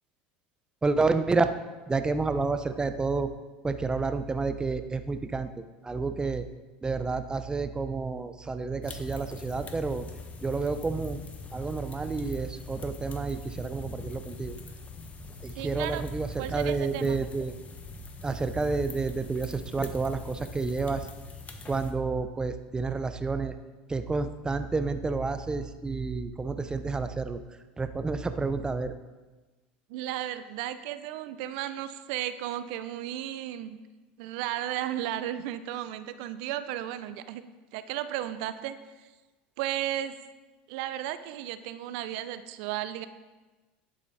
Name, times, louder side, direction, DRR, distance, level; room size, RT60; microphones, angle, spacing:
voice 1, 0.8-1.5 1.9-3.3 3.6-5.5 5.8-6.5 6.8-10.1 10.4-11.2 11.5-14.6 15.4-17.5 18.2-21.1 21.7-23.5 23.9-27.4 27.8-28.9, right 3 dB, 15° right, 10 dB, 0.8 m, -29 dB
sound 1, 8.8-21.9, left 3 dB, 30° left, 1.4 m, -43 dB
voice 2, 15.6-16.0 16.4-17.2 29.9-33.8 34.2-37.4 37.7-38.8 39.6-40.2 40.7-43.1, right 12 dB, 70° right, 12 dB, 0.8 m, -34 dB
11.5 x 8.3 x 4.2 m, 1.2 s
hypercardioid pair, 95°, 5 cm